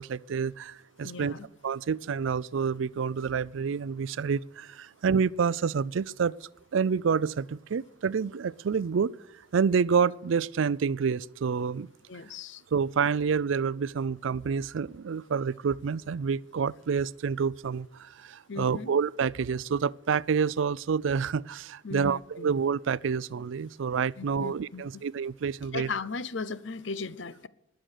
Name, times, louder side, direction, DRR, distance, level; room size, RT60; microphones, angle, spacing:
voice 1, 0.0-1.3 1.6-9.1 9.5-11.9 12.7-25.9, right 6 dB, 75° right, 0.4 m, -28 dB
voice 2, 1.0-1.5 12.1-12.6 18.5-18.9 21.8-22.5 24.2-25.0 25.7-27.5, left 4 dB, 70° left, 0.7 m, -37 dB
20.5 x 7.7 x 6.6 m
head